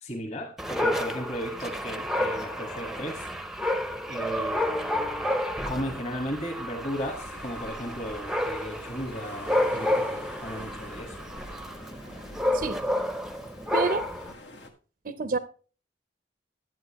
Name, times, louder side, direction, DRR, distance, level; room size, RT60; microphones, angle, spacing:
voice 1, 0.0-3.3 4.1-5.3 5.6-11.1, equal, 35° left, 1.7 m, -35 dB
Dog, 0.6-14.3, left 1 dB, ahead, 0.7 m, -30 dB
sound 1, 7.0-14.7, left 2 dB, 75° left, 1.5 m, -47 dB
voice 2, 13.7-14.1 15.0-15.4, right 4 dB, 50° right, 0.6 m, -28 dB
11.0 x 8.9 x 3.0 m
head